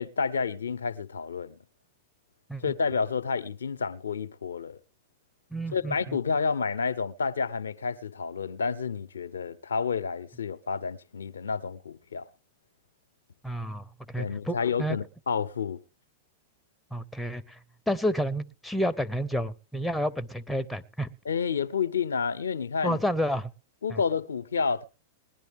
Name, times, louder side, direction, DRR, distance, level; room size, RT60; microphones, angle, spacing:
voice 1, 0.0-1.6 2.6-4.8 5.7-12.3 14.2-15.8 21.2-23.0 23.8-24.8, left 5 dB, 85° left, 0.7 m, -30 dB
voice 2, 5.5-6.2 13.4-13.8 14.1-15.0 16.9-17.6 17.9-21.1 22.8-23.5 23.9-24.0, equal, 5° left, 0.9 m, -30 dB
20.0 x 10.5 x 3.5 m
hypercardioid pair, 105°, 0 cm